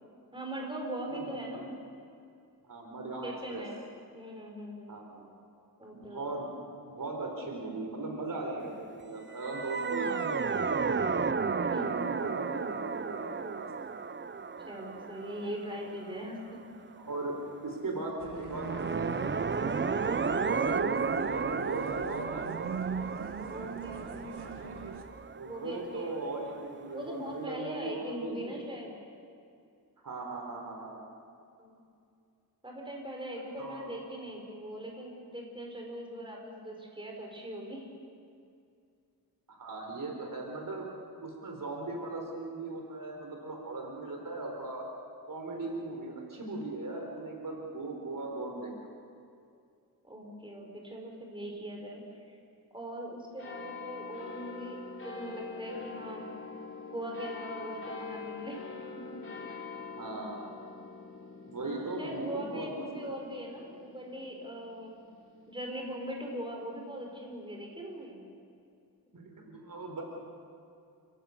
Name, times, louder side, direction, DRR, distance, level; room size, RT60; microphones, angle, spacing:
voice 1, 0.3-1.7 3.2-3.8 4.1-5.0 5.8-6.4 11.7-12.1 14.7-16.6 23.5-24.7 25.4-26.1 26.9-28.9 31.6-31.8 32.6-37.9 50.0-52.4 52.7-56.2 56.9-58.6 59.1-59.2 59.5-59.7 61.6-65.0 65.5-68.3, equal, 15° right, 0 dB, 5.2 m, -41 dB
voice 2, 1.1-1.7 2.6-3.6 4.9-5.3 5.9-6.5 6.8-11.1 11.6-13.6 17.0-17.4 17.6-19.3 20.3-22.6 25.3-28.7 30.0-31.0 33.6-34.0 39.5-40.9 41.2-44.8 45.3-48.7 60.0-60.4 61.4-63.2 69.1-70.0, right 2 dB, 55° right, 1 dB, 4.2 m, -38 dB
sound 1, 9.3-16.6 18.4-26.2, right 5 dB, 30° right, 0.7 m, -33 dB
sound 2, 18.2-25.0, right 5 dB, 80° right, 2.2 m, -42 dB
sound 3, 53.4-66.3 66.9-67.0, left 4 dB, 30° left, 3.5 m, -45 dB
29.5 x 17.0 x 7.1 m, 2.4 s
wide cardioid pair, 95°, 39 cm